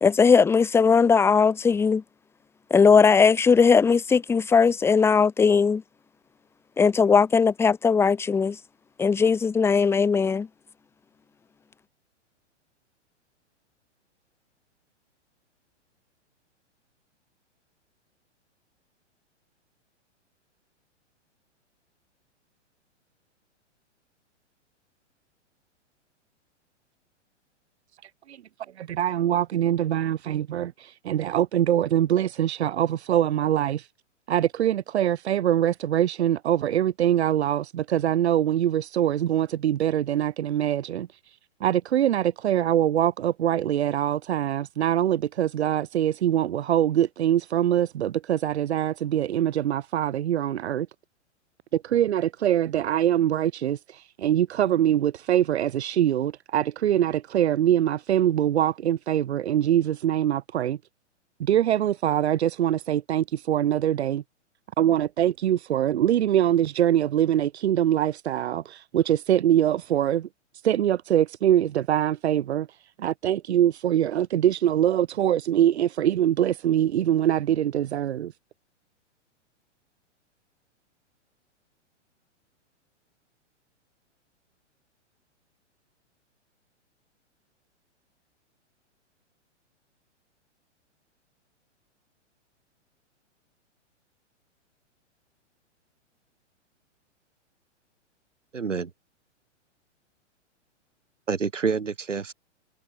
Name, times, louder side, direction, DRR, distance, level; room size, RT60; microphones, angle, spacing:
voice 1, 0.0-2.0 2.7-5.8 6.8-8.6 9.0-10.5, left 5 dB, 5° left, 0.7 m, -19 dB
voice 2, 28.0-28.4 28.8-33.9 34.3-50.9 51.7-60.8 61.4-64.2 64.8-70.3 70.6-78.3, right 11 dB, 60° right, 6.3 m, -23 dB
voice 3, 98.5-98.9 101.3-102.3, right 5 dB, 80° right, 7.5 m, -27 dB
figure-of-eight pair, 115°, 36 cm